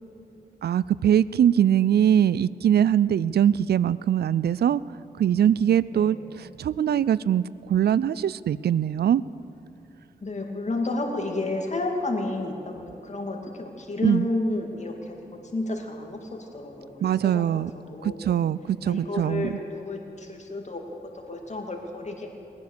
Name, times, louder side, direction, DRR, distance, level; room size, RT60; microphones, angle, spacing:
voice 1, 0.6-4.8 5.2-7.4 7.7-9.2 14.0-14.3 17.0-17.7 18.0-19.5, right 9 dB, 65° right, 19 dB, 0.4 m, -22 dB
voice 2, 10.2-18.4 18.9-20.8 21.1-22.3, left 2 dB, 40° left, 1 dB, 2.7 m, -31 dB
20.0 x 9.5 x 6.8 m, 2.8 s
cardioid pair, 45°, 18 cm